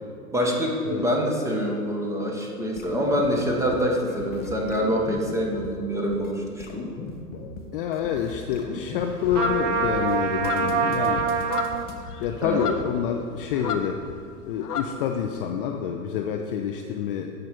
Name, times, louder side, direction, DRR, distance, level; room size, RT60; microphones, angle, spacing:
voice 1, 0.3-6.8 12.4-12.7, equal, 5° right, 0 dB, 1.2 m, -25 dB
sound 1, 2.4-2.5 2.8-3.8 4.1-5.7 6.1-6.3 6.6-7.6 7.9-9.5 10.0-10.2 10.4-11.9, left 4 dB, 20° left, 0.9 m, -37 dB
voice 2, 7.7-11.2 12.2-14.0 14.5-17.3, left 8 dB, 35° left, 4 dB, 0.5 m, -27 dB
sound 2, 9.3-14.2 14.5-15.5, left 6 dB, 75° left, 0.9 m, -34 dB
Trumpet, 9.3-11.9, right 6 dB, 50° right, 0.9 m, -25 dB
13.0 x 5.1 x 4.4 m, 2.3 s
figure-of-eight pair, 105°, 46 cm